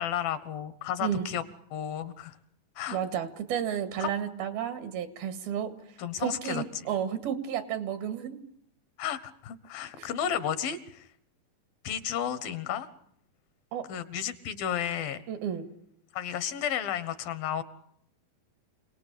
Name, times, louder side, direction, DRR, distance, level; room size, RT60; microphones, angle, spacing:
voice 1, 0.0-1.4 1.7-2.4 2.8-3.0 4.0-4.1 6.0-6.6 9.0-11.0 11.8-12.9 13.9-15.2 16.1-17.6, left 9 dB, 80° left, 14 dB, 3.2 m, -32 dB
voice 2, 2.9-8.4 10.0-10.1 13.7-13.9 15.3-15.7, right 9 dB, 90° right, 10 dB, 3.8 m, -32 dB
27.5 x 19.0 x 8.4 m, 0.70 s
omnidirectional pair, 4.1 m